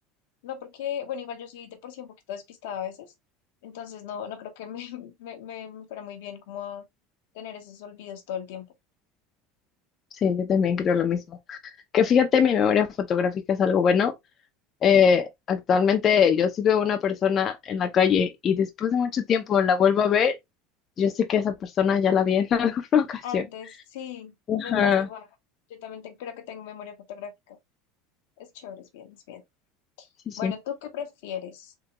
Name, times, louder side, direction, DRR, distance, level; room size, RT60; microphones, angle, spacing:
voice 1, 0.4-3.1 3.6-6.8 7.3-8.7 23.2-24.3 24.6-25.3 25.7-27.6 28.4-29.4 30.0-30.1 30.4-31.7, left 9 dB, 80° left, 1.0 m, -37 dB
voice 2, 10.2-11.6 11.9-14.1 14.8-20.3 21.0-23.4 24.5-25.1 30.3-30.5, left 7 dB, 35° left, 0.6 m, -22 dB
3.7 x 2.8 x 2.9 m
supercardioid pair, 115°, 0 cm